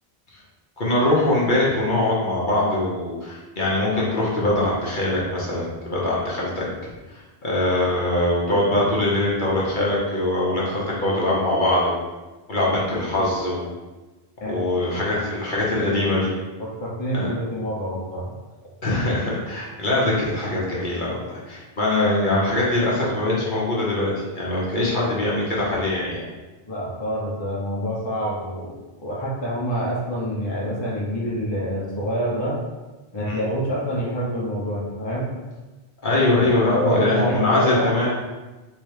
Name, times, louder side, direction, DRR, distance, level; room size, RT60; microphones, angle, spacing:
voice 1, 0.8-6.9 7.4-11.9 12.5-13.6 14.5-16.3 17.1-17.3 18.8-24.1 24.3-26.2 33.2-33.4 36.0-38.1, left 1 dB, 50° left, -6 dB, 1.2 m, -22 dB
voice 2, 16.6-18.3 26.7-28.7 29.0-32.6 33.1-35.3 36.7-37.9, equal, 25° left, -5 dB, 1.0 m, -26 dB
3.3 x 3.3 x 4.8 m, 1.2 s
omnidirectional pair, 1.0 m